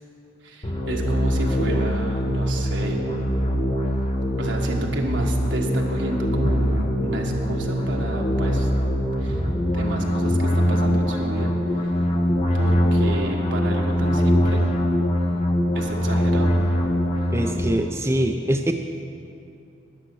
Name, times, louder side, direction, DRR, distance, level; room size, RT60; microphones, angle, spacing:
voice 1, 0.4-3.0 4.4-8.7 9.2-9.4 9.7-11.9 12.5-14.6 15.7-16.6, right 1 dB, 70° right, 0 dB, 1.6 m, -31 dB
sound 1, 0.6-17.7, equal, 30° left, 1.1 m, -22 dB
voice 2, 17.3-18.7, right 1 dB, 15° right, 4 dB, 0.4 m, -23 dB
13.0 x 10.0 x 6.2 m, 2.6 s
head